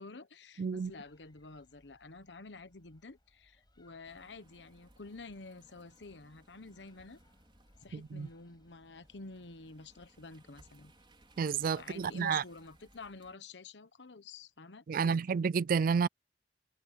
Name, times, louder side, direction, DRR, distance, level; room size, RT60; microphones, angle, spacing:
voice 1, 0.0-7.2 7.8-10.9 11.8-15.4, left 3 dB, 85° left, 1.1 m, -50 dB
voice 2, 0.6-0.9 7.9-8.3 11.4-12.4 14.9-16.1, right 6 dB, 55° right, 0.4 m, -30 dB
sound 1, 0.7-13.0, left 1 dB, 25° left, 6.9 m, -70 dB
sound 2, 4.0-13.4, right 2 dB, 30° right, 4.9 m, -64 dB
head